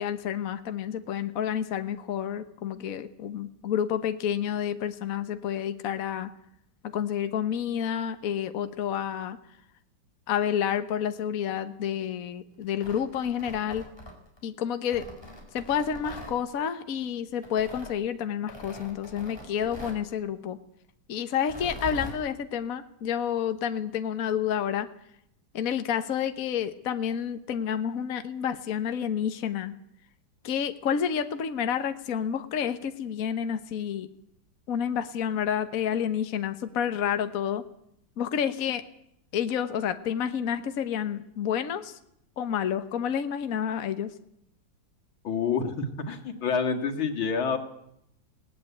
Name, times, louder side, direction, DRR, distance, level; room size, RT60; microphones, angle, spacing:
voice 1, 0.0-6.3 6.8-9.4 10.3-13.9 14.4-15.1 15.5-20.6 21.1-24.9 25.5-29.8 30.4-34.1 34.7-37.6 38.2-38.8 39.3-42.0 42.4-44.1, left 8 dB, 50° left, 9 dB, 1.4 m, -29 dB
Tearing, 12.6-14.4 14.9-16.4 17.4-17.9 18.5-20.1 21.4-22.2, equal, 10° left, 4.4 m, -42 dB
voice 2, 45.2-47.6, left 5 dB, 90° left, 4 dB, 2.9 m, -28 dB
19.5 x 18.0 x 8.4 m, 0.75 s
omnidirectional pair, 2.1 m